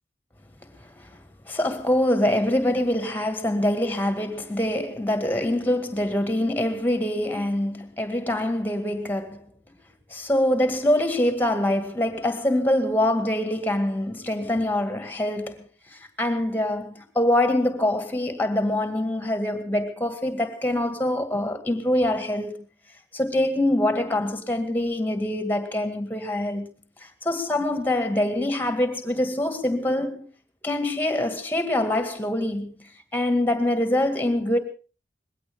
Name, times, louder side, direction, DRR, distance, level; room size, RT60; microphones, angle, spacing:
voice 1, 1.5-9.4 10.1-15.7 16.2-22.7 23.1-26.7 27.2-30.3 30.6-32.7 33.1-34.6, left 1 dB, 10° left, 2.1 m, -24 dB
21.0 x 17.0 x 3.7 m
head